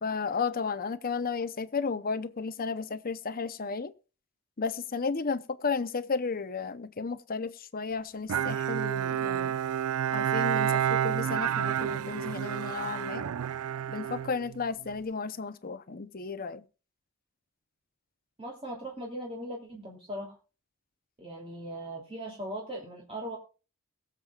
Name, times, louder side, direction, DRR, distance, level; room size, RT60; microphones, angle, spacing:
voice 1, 0.0-3.9 4.6-9.5 10.1-13.2 13.9-16.6, left 5 dB, 40° left, 0.7 m, -33 dB
Bowed string instrument, 8.3-15.0, right 9 dB, 80° right, 0.4 m, -30 dB
voice 2, 18.4-20.4 21.2-23.4, right 1 dB, 25° right, 2.9 m, -39 dB
22.5 x 7.5 x 2.4 m
head